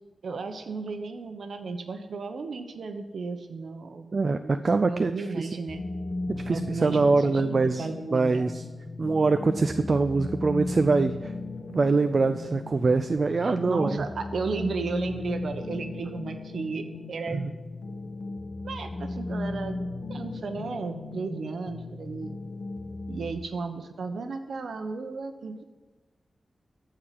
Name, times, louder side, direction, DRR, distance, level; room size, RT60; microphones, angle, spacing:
voice 1, 0.2-4.6 4.9-5.8 6.5-8.5 13.4-17.5 18.6-19.8 20.1-22.3 23.1-25.6, right 4 dB, 85° right, 7 dB, 1.1 m, -34 dB
voice 2, 4.1-5.5 6.3-8.6 9.0-11.3 11.7-14.0 17.3-17.6, right 3 dB, 45° right, 9 dB, 0.4 m, -24 dB
sound 1, 5.7-23.3, left 2 dB, 55° left, 1.3 m, -36 dB
14.0 x 4.8 x 7.6 m, 1.2 s
wide cardioid pair, 135°, 0 cm